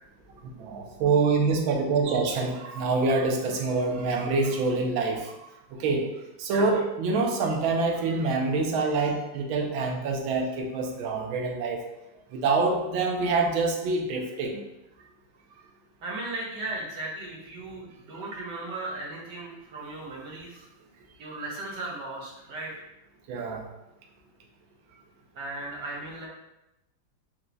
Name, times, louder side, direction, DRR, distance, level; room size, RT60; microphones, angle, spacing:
voice 1, 0.6-5.3 5.7-6.1 6.4-11.8 12.3-14.6 23.3-23.6, right 3 dB, 85° right, 2 dB, 1.5 m, -26 dB
voice 2, 6.5-6.8 16.0-20.7 21.2-22.9 25.3-26.3, right 2 dB, 65° right, -3 dB, 1.6 m, -36 dB
4.5 x 2.3 x 3.8 m, 0.92 s
omnidirectional pair, 2.1 m